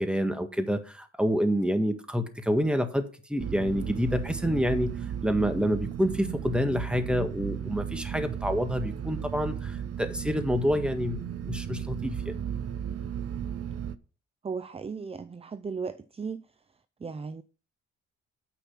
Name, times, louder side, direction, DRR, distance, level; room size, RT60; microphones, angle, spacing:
voice 1, 0.0-4.9 5.2-12.3, equal, 5° right, 1.6 m, -28 dB
sound 1, 3.4-14.0, right 9 dB, 50° right, 0.8 m, -35 dB
voice 2, 14.4-16.4 17.0-17.4, right 5 dB, 20° right, 0.5 m, -36 dB
9.0 x 6.1 x 5.9 m
cardioid pair, 90°, 30 cm